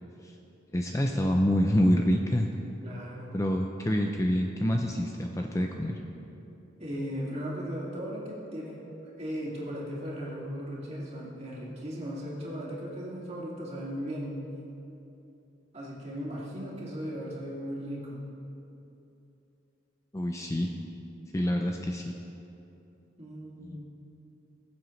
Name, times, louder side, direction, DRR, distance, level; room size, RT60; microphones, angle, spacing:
voice 1, 0.7-2.5 3.3-6.0 20.1-20.7 21.3-22.1 23.6-23.8, equal, 15° left, 2 dB, 0.4 m, -27 dB
voice 2, 2.8-3.3 6.8-14.4 15.7-18.3 23.2-23.8, equal, 35° right, -5 dB, 2.3 m, -37 dB
20.0 x 7.6 x 3.2 m, 2.9 s
head